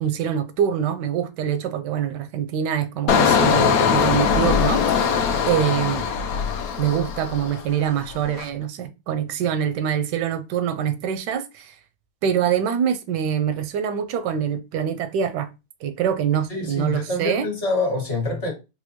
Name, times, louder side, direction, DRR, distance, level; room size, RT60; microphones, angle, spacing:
voice 1, 0.0-5.2 5.5-6.1 6.8-11.7 12.2-15.5 15.8-17.5, right 9 dB, 85° right, 1.2 m, -24 dB
Engine, 3.1-7.7 8.1-8.4, left 6 dB, 70° left, 1.0 m, -21 dB
voice 2, 16.5-18.5, left 3 dB, 40° left, 1.5 m, -26 dB
4.2 x 2.2 x 2.9 m
omnidirectional pair, 1.8 m